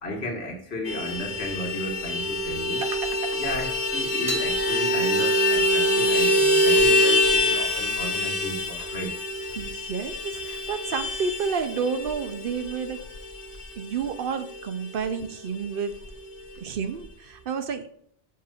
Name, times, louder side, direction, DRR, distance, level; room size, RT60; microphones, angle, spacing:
voice 1, 0.0-2.8 3.3-9.1, left 1 dB, 85° left, 0 dB, 1.7 m, -34 dB
Vehicle horn car horn honking, 0.9-14.8 15.0-15.2 15.5-15.6 15.9-16.6, left 1 dB, 45° left, 0.9 m, -25 dB
voice 2, 2.8-3.4 9.6-13.1 13.8-15.9 16.6-18.0, right 6 dB, 65° right, 9 dB, 0.8 m, -30 dB
sound 1, 4.3-10.8, equal, 45° right, 1.5 m, -40 dB
7.4 x 5.9 x 2.4 m, 0.68 s
omnidirectional pair, 1.0 m